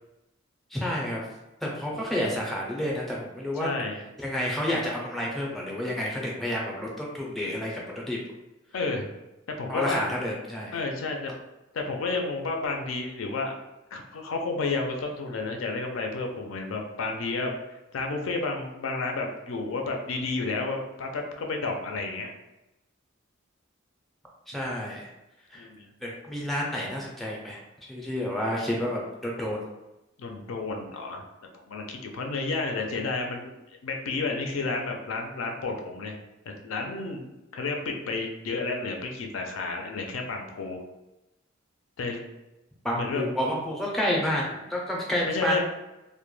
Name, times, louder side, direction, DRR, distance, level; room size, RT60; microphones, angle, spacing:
voice 1, 0.7-1.2 1.6-3.7 4.2-8.2 9.7-10.7 24.5-25.1 25.5-25.7 26.0-27.6 27.9-29.6 42.8-45.6, equal, ahead, -3 dB, 0.4 m, -30 dB
voice 2, 3.6-4.0 8.7-9.1 9.6-10.1 10.7-11.3 11.7-13.5 13.9-17.5 17.9-22.3 25.6-25.9 30.2-31.2 31.7-33.6 33.8-36.2 36.6-40.8 42.0-42.2 42.9-43.2 45.2-45.6, left 3 dB, 75° left, 3 dB, 0.4 m, -31 dB
2.1 x 2.1 x 3.0 m, 0.96 s
head